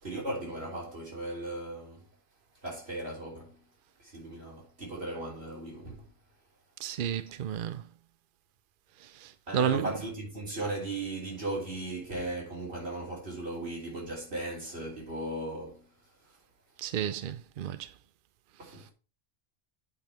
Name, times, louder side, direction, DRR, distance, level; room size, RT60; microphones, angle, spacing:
voice 1, 0.0-2.1 2.6-3.6 4.0-6.1 9.5-15.9 18.6-18.9, right 2 dB, 85° right, 3.9 m, -37 dB
voice 2, 6.8-7.8 9.0-9.9 16.8-17.9, right 9 dB, 60° right, 0.7 m, -32 dB
8.5 x 5.3 x 4.3 m
omnidirectional pair, 1.0 m